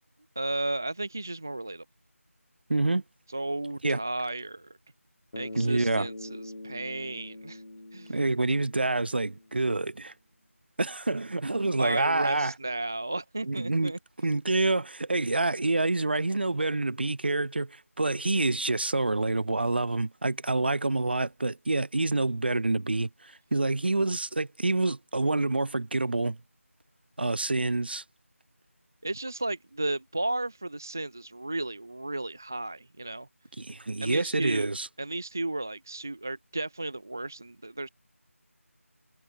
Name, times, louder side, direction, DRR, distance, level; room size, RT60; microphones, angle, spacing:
voice 1, 0.4-1.8 3.3-4.8 5.4-7.6 7.9-8.2 11.8-14.0 29.0-33.3 34.0-34.7 35.0-37.9, right 2 dB, 10° right, 0.5 m, -34 dB
voice 2, 2.7-3.0 3.8-4.0 5.6-6.1 8.1-10.1 10.8-12.5 13.5-13.9 14.2-23.1 23.5-26.4 27.2-28.0 33.6-34.9, right 2 dB, 45° right, 1.7 m, -27 dB
Bass guitar, 5.3-9.7, left 1 dB, 70° left, 5.7 m, -43 dB
figure-of-eight pair, 175°, 8 cm